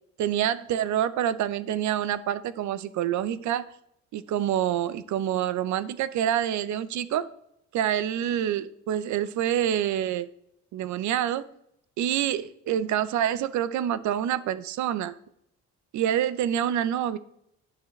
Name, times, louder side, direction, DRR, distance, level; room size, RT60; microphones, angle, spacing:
voice 1, 0.2-3.7 4.1-7.3 7.7-10.3 10.7-11.5 12.0-15.1 15.9-17.2, right 10 dB, 70° right, 16 dB, 0.5 m, -27 dB
9.7 x 6.4 x 3.1 m, 0.77 s
cardioid pair, 90°, 30 cm